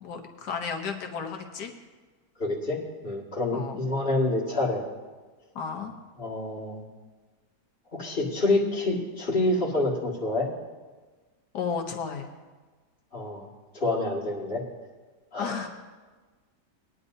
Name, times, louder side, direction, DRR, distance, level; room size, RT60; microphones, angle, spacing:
voice 1, 0.0-1.7 3.5-3.8 5.5-5.9 11.5-12.3 15.4-15.7, left 6 dB, 85° left, 3 dB, 1.7 m, -33 dB
voice 2, 2.4-4.8 6.2-6.8 7.9-10.5 13.1-13.5 13.7-14.6 15.3-15.6, left 2 dB, 35° left, -4 dB, 2.2 m, -27 dB
20.5 x 10.0 x 2.7 m, 1.3 s
omnidirectional pair, 1.7 m